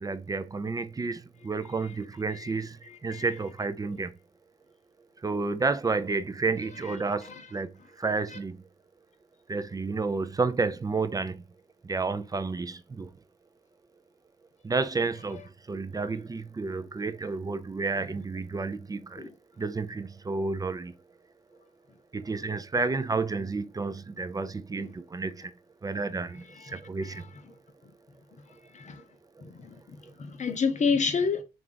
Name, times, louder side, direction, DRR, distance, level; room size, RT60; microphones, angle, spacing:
voice 1, 0.0-4.1 5.2-7.7 8.0-8.6 9.5-11.4 11.8-13.1 14.6-15.4 15.7-19.3 19.6-20.9 22.1-25.5 25.8-27.2, right 4 dB, 20° right, 0.3 m, -31 dB
voice 2, 2.8-3.3 6.8-7.5 8.3-8.4 19.2-19.3 24.7-24.9 26.4-27.3 28.7-29.0 29.4-31.4, left 5 dB, 35° left, 0.7 m, -31 dB
3.2 x 2.4 x 3.8 m
cardioid pair, 90°, 20 cm